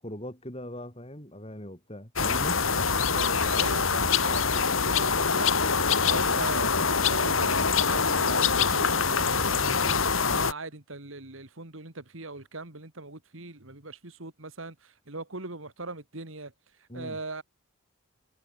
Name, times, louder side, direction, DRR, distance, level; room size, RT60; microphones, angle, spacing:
voice 1, 0.0-3.0 16.9-17.2, left 1 dB, 30° left, 6.1 m, -40 dB
sound 1, 2.2-10.5, left 5 dB, 75° left, 2.5 m, -24 dB
voice 2, 2.9-5.5 6.1-16.5 16.8-17.4, right 3 dB, 70° right, 2.6 m, -40 dB
head